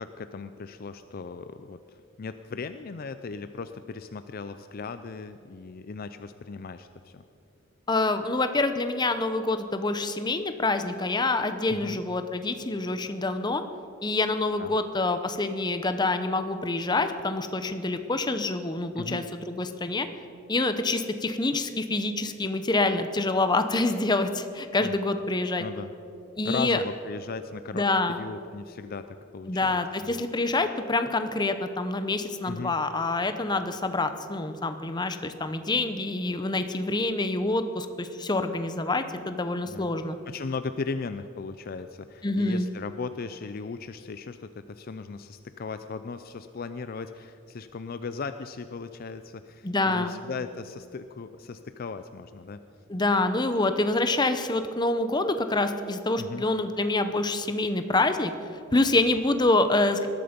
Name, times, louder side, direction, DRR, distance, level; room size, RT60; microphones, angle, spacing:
voice 1, 0.0-7.2 11.7-12.0 14.6-14.8 19.0-19.3 24.8-25.0 25.6-25.9 26.4-27.9 28.1-30.2 32.4-32.7 39.7-39.9 40.3-52.6 56.2-56.5, left 4 dB, 45° left, 10 dB, 0.4 m, -37 dB
voice 2, 7.9-13.6 14.0-20.1 20.5-25.7 26.4-26.8 27.7-28.2 29.5-40.2 42.2-42.7 49.6-50.2 52.9-58.3 58.7-60.1, left 2 dB, 20° left, 9 dB, 0.8 m, -26 dB
19.5 x 13.0 x 5.2 m, 2.7 s
head